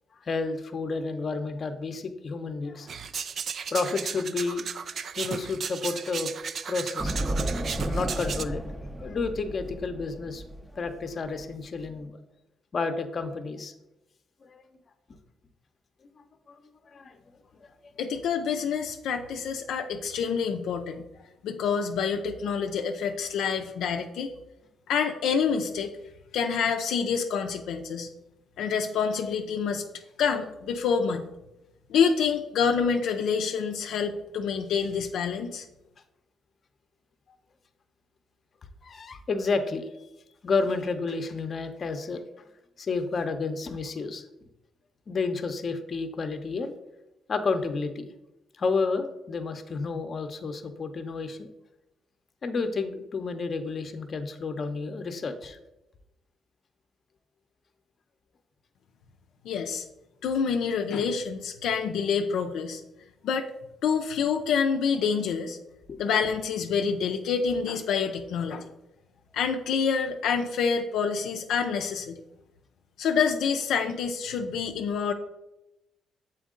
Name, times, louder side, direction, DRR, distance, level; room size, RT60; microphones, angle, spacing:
voice 1, 0.2-2.9 3.7-4.7 5.2-6.3 6.7-7.2 7.8-8.6 9.0-10.4 10.7-12.2 12.7-13.7 14.4-14.7 15.1-15.2 16.5-17.2 17.8-17.9 38.8-39.9 40.4-42.2 42.8-44.2 45.1-46.7 47.3-48.1 48.6-51.5 52.4-55.6 65.9-66.0, left 4 dB, 45° left, 7 dB, 0.7 m, -31 dB
sound 1, 2.9-8.4, right 6 dB, 55° right, 0.3 m, -35 dB
sound 2, 7.0-11.9, right 1 dB, 5° right, 0.6 m, -33 dB
voice 2, 18.0-21.0 21.4-24.3 24.9-25.9 26.3-28.1 28.6-29.8 30.2-31.2 31.9-35.7 59.4-59.9 60.2-62.8 63.2-63.5 63.8-65.6 66.0-68.7 69.3-72.2 73.0-75.1, left 6 dB, 80° left, 4 dB, 0.4 m, -27 dB
7.0 x 4.5 x 3.7 m, 0.93 s
cardioid pair, 90°, 0 cm